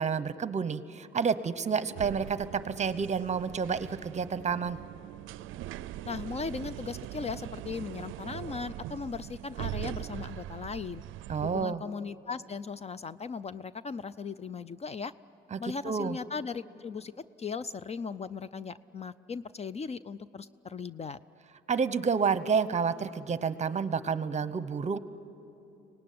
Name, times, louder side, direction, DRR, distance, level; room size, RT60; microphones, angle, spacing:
voice 1, 0.0-4.8 11.3-11.8 15.5-16.2 21.7-25.0, right 6 dB, 35° right, 14 dB, 0.9 m, -29 dB
sound 1, 1.9-11.6, right 14 dB, 80° right, 0.4 m, -41 dB
voice 2, 6.0-11.0 11.4-15.1 15.6-17.1 17.4-21.2, left 5 dB, 30° left, 16 dB, 0.5 m, -38 dB
25.0 x 18.5 x 9.5 m, 2.9 s
cardioid pair, 90°, 20 cm